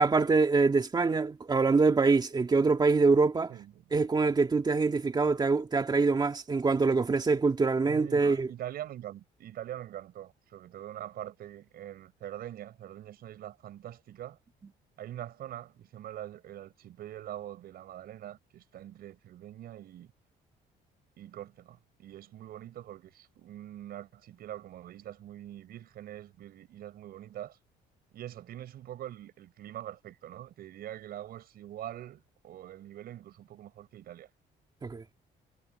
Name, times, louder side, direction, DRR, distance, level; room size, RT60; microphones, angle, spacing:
voice 1, 0.0-3.5 3.9-8.5 34.8-35.0, right 4 dB, 25° right, 2.5 m, -25 dB
voice 2, 3.5-3.8 7.8-14.4 15.0-20.1 21.2-27.6 28.1-34.3, right 12 dB, 65° right, 5.6 m, -44 dB
cardioid pair, 110°, 17 cm